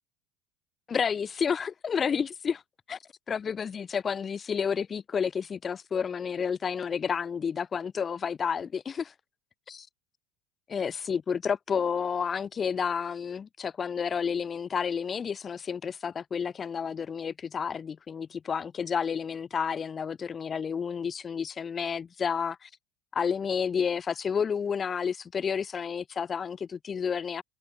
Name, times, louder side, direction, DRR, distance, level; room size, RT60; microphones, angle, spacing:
voice 1, 0.9-2.6 2.9-3.0 3.3-9.1 9.7-9.9 10.7-22.7 23.1-27.4, left 6 dB, 35° left, 0.4 m, -30 dB
hypercardioid pair, 70°, 0 cm